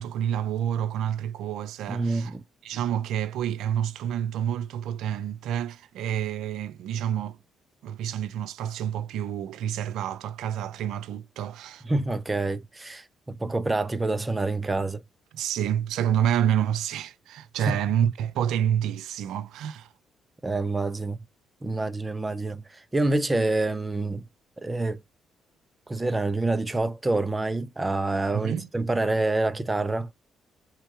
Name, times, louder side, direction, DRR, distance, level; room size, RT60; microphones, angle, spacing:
voice 1, 0.0-2.4 2.6-7.4 7.8-11.9 15.3-19.9 28.3-28.7, right 10 dB, 85° right, 0.5 m, -28 dB
voice 2, 1.9-2.4 11.8-15.0 17.6-17.8 20.4-21.2 21.6-24.2 24.6-25.0 25.9-30.1, right 2 dB, 20° right, 0.6 m, -27 dB
3.7 x 3.0 x 4.6 m
cardioid pair, 90°, 0 cm